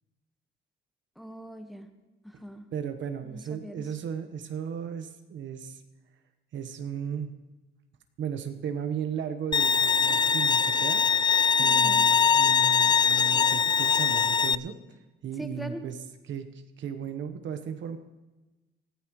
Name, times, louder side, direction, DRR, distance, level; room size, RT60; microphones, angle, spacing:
voice 1, 1.2-1.9 2.2-2.7 3.2-3.9 11.6-12.1 15.4-15.9, equal, ahead, 6 dB, 1.5 m, -41 dB
voice 2, 2.7-5.8 6.5-7.3 8.2-11.0 11.6-14.8 15.2-15.9 16.3-16.5 16.8-18.0, right 8 dB, 70° right, 8 dB, 1.3 m, -35 dB
Bowed string instrument, 9.5-14.6, left 6 dB, 20° left, 0.3 m, -22 dB
19.0 x 15.0 x 3.2 m, 1.1 s
cardioid pair, 90°, 20 cm